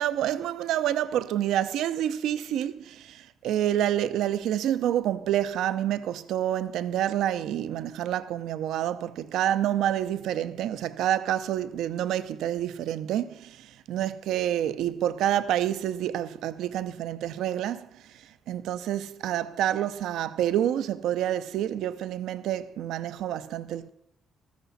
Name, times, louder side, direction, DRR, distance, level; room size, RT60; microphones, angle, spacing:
voice 1, 0.0-17.9 18.5-23.9, right 11 dB, 75° right, 0.6 m, -28 dB
14.0 x 13.5 x 4.1 m
hypercardioid pair, 55°, 0 cm